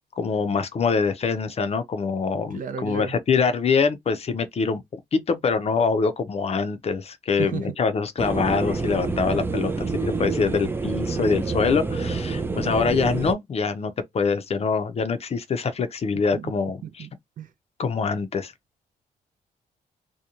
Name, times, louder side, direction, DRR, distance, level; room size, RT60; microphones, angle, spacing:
voice 1, 0.2-17.1 17.8-18.5, left 5 dB, 40° left, 0.5 m, -24 dB
voice 2, 2.5-3.1 7.4-7.7 9.8-9.9 16.3-16.5 16.8-17.1 17.4-17.5, right 7 dB, 60° right, 0.6 m, -33 dB
sound 1, 8.2-13.3, right 4 dB, 15° right, 0.4 m, -27 dB
2.9 x 2.1 x 2.4 m
cardioid pair, 95°, 16 cm